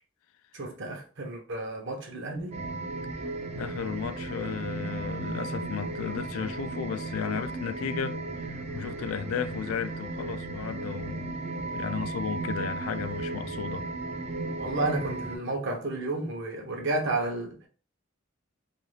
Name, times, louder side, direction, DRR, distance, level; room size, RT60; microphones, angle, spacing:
voice 1, 0.5-2.7 14.6-17.7, right 2 dB, 60° right, 0.7 m, -31 dB
sound 1, 2.5-15.4, right 3 dB, 30° right, 0.4 m, -35 dB
voice 2, 3.5-8.2 8.5-11.4 11.7-13.8, left 7 dB, 85° left, 0.3 m, -34 dB
2.5 x 2.3 x 3.1 m
head